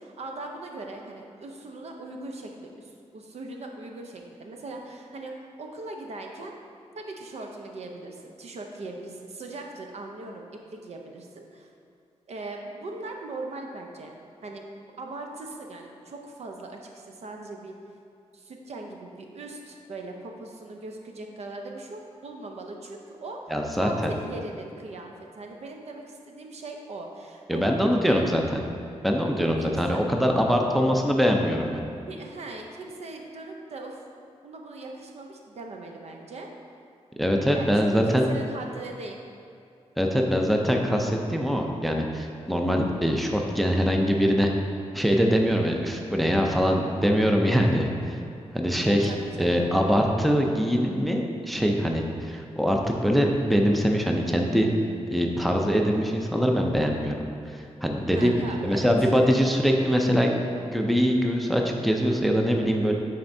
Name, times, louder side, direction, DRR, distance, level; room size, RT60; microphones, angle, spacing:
voice 1, 0.0-6.5 6.9-10.4 10.7-11.7 12.3-14.7 15.0-17.7 18.3-28.3 29.4-30.0 32.1-34.0 34.4-36.5 37.5-39.2 48.8-49.8 58.1-58.9, right 2 dB, 70° right, 2 dB, 0.6 m, -40 dB
voice 2, 23.5-24.1 27.5-28.6 29.0-31.8 37.2-38.3 40.0-44.5 44.9-48.2 48.5-49.1 49.4-54.7 55.1-57.1 57.5-58.3 58.6-60.3 60.6-62.9, equal, ahead, 1 dB, 0.5 m, -23 dB
9.2 x 4.3 x 2.7 m, 2.5 s
wide cardioid pair, 110°, 12 cm